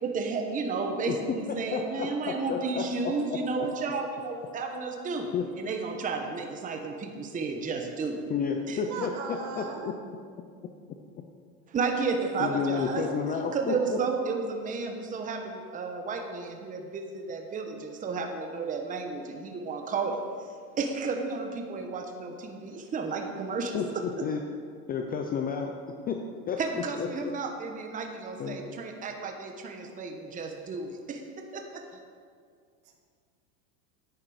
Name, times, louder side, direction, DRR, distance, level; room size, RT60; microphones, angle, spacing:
voice 1, 0.0-8.2 8.7-8.8 11.7-13.0 13.5-20.2 20.8-23.8 24.2-24.3 26.6-31.2 31.5-32.0, right 4 dB, 15° right, 3 dB, 1.0 m, -32 dB
voice 2, 1.5-2.9 5.3-5.5 8.3-9.9 12.4-14.0 23.7-23.9 24.2-24.4 24.9-25.7 26.1-26.2 26.5-26.6 27.0-27.3 28.4-28.8, left 6 dB, 20° left, 4 dB, 0.4 m, -31 dB
voice 3, 8.8-9.9, right 4 dB, 50° right, 4 dB, 1.7 m, -37 dB
10.5 x 8.8 x 4.9 m, 2.1 s
supercardioid pair, 135°, 48 cm